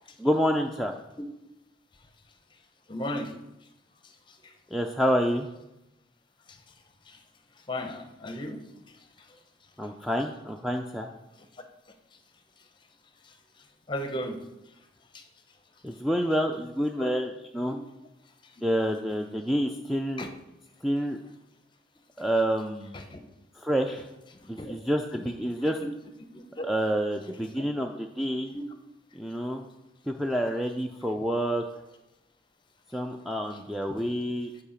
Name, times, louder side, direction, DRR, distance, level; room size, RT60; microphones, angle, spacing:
voice 1, 0.2-0.9 4.7-5.5 9.8-11.1 15.8-17.8 18.6-20.3 20.8-21.2 22.2-23.0 23.6-24.1 24.5-25.8 26.6-28.5 29.1-29.6 30.1-31.6 32.9-34.5, equal, ahead, 3 dB, 0.3 m, -28 dB
voice 2, 2.9-3.3 7.1-7.2 7.7-8.6 13.9-14.4 15.1-15.2 17.0-17.1 20.2-20.3 23.1-23.2 24.6-24.7 26.3-26.6 27.6-27.7 28.5-28.6, left 1 dB, 25° left, 6 dB, 0.7 m, -34 dB
8.4 x 4.7 x 5.0 m, 0.94 s
head